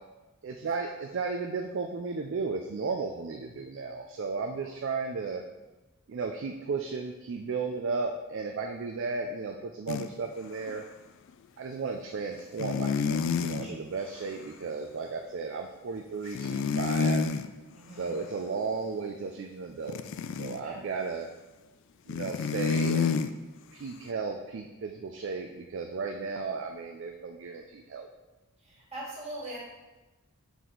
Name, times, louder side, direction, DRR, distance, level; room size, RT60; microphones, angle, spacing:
voice 1, 0.4-5.4 6.1-10.8 11.6-17.3 17.9-20.0 20.3-21.3 22.1-23.2 23.7-28.1, right 4 dB, 55° right, 4 dB, 0.4 m, -34 dB
sound 1, 9.9-10.1 10.7-10.8 12.6-13.7 16.4-17.5 19.9-20.6 22.1-23.3, left 5 dB, 55° left, 0.3 m, -28 dB
voice 2, 17.7-18.2 20.6-20.8 28.6-29.6, right 1 dB, 30° right, -6 dB, 1.8 m, -42 dB
5.9 x 4.7 x 3.9 m, 1.1 s
head